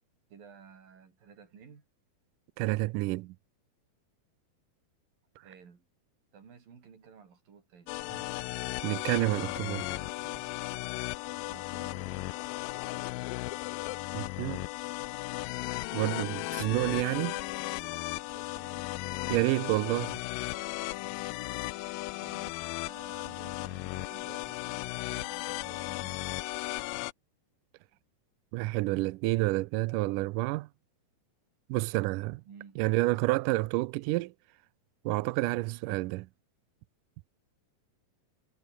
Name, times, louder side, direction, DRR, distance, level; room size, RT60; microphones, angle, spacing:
voice 1, 0.3-1.9 5.4-5.9 6.3-8.0 8.9-10.5 11.5-12.4 17.1-17.4 17.8-18.9 22.2-26.2 32.5-32.8, right 6 dB, 65° right, 5.6 m, -54 dB
voice 2, 2.6-3.3 8.8-9.8 14.1-14.7 15.9-17.3 19.3-20.2 28.5-30.7 31.7-32.4 32.8-34.3 35.1-36.3, right 21 dB, 85° right, 1.9 m, -29 dB
sound 1, 7.9-27.1, left 21 dB, 80° left, 2.2 m, -36 dB
omnidirectional pair, 4.3 m